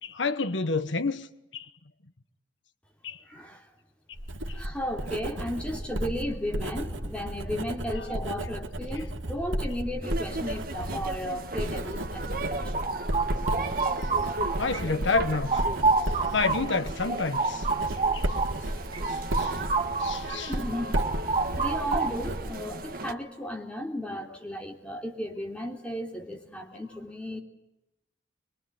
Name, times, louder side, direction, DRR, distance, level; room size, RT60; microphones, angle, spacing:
voice 1, 0.0-1.3 1.5-1.7 3.0-3.2 4.5-4.6 14.6-15.7 16.3-18.3 18.9-19.6 19.9-20.5, left 3 dB, 70° left, 1.3 m, -29 dB
voice 2, 3.2-3.7 4.5-12.7 20.5-27.4, equal, 5° left, 3.4 m, -35 dB
Writing, 4.1-23.0, right 1 dB, 80° right, 2.5 m, -34 dB
sound 1, 10.0-23.1, right 2 dB, 45° right, 1.8 m, -37 dB
sound 2, 12.5-14.8 15.1-20.3 20.6-22.4, right 4 dB, 30° right, 1.5 m, -29 dB
23.5 x 23.0 x 9.9 m
head